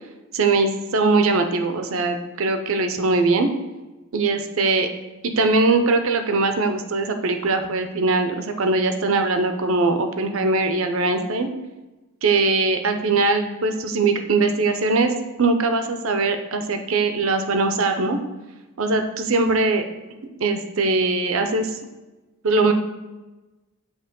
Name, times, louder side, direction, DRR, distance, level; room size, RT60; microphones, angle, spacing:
voice 1, 0.3-3.5 4.1-4.9 5.2-11.5 12.2-15.1 15.4-18.2 18.8-19.8 20.4-21.7 22.4-22.7, right 3 dB, 65° right, 6 dB, 0.6 m, -21 dB
8.0 x 3.0 x 5.2 m, 1.1 s
head